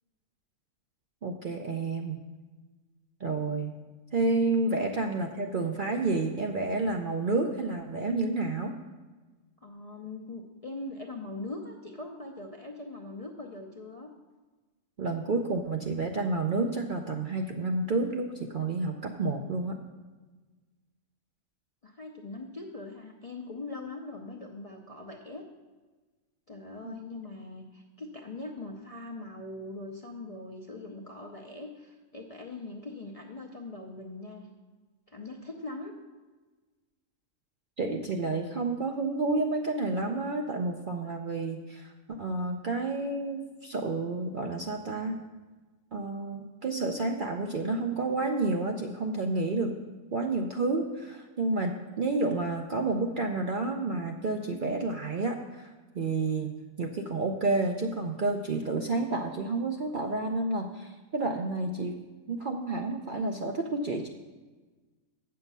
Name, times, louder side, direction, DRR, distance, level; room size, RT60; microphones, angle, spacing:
voice 1, 1.2-2.2 3.2-3.7 4.1-8.7 15.0-19.8 26.8-27.0 37.8-41.9 42.2-45.2 45.9-49.8 50.1-56.5 56.8-62.0 62.3-64.1, right 3 dB, 55° right, 2 dB, 0.6 m, -30 dB
voice 2, 9.6-14.1 21.8-25.4 26.5-34.5 35.1-35.9, left 2 dB, 40° left, 1 dB, 0.5 m, -41 dB
8.1 x 6.6 x 5.4 m, 1.3 s
omnidirectional pair, 1.4 m